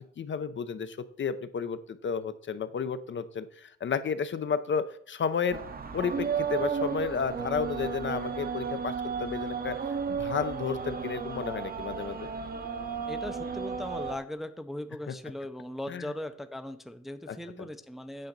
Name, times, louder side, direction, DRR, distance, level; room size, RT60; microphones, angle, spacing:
voice 1, 0.0-5.6 5.9-9.8 10.1-12.3 15.1-15.2 15.9-16.1 17.3-17.4, left 6 dB, 40° left, 12 dB, 0.6 m, -32 dB
sound 1, 5.5-14.2, right 6 dB, 30° right, 0.8 m, -33 dB
voice 2, 13.1-18.3, left 1 dB, ahead, 9 dB, 0.5 m, -39 dB
8.6 x 6.4 x 3.9 m, 0.64 s
cardioid pair, 90°, 30 cm